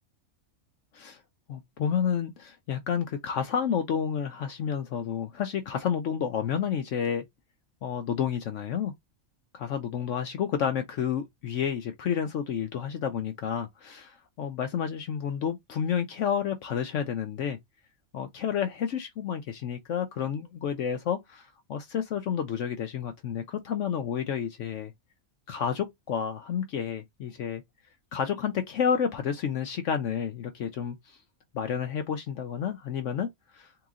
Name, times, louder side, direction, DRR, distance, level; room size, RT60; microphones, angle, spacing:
voice 1, 1.5-7.2 7.8-8.9 9.5-17.6 18.1-24.9 25.5-27.6 28.1-31.2 31.5-33.7, left 8 dB, 70° left, 0.9 m, -30 dB
3.7 x 2.9 x 3.6 m
omnidirectional pair, 1.4 m